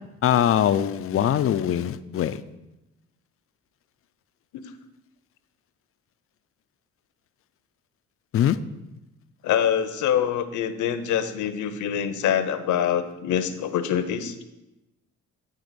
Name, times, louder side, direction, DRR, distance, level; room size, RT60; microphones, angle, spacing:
voice 1, 0.2-2.4 8.3-8.6, left 10 dB, 50° left, 13 dB, 0.4 m, -22 dB
voice 2, 9.4-14.3, left 9 dB, 75° left, 10 dB, 0.8 m, -25 dB
9.5 x 3.5 x 6.7 m, 0.96 s
cardioid pair, 90°, 30 cm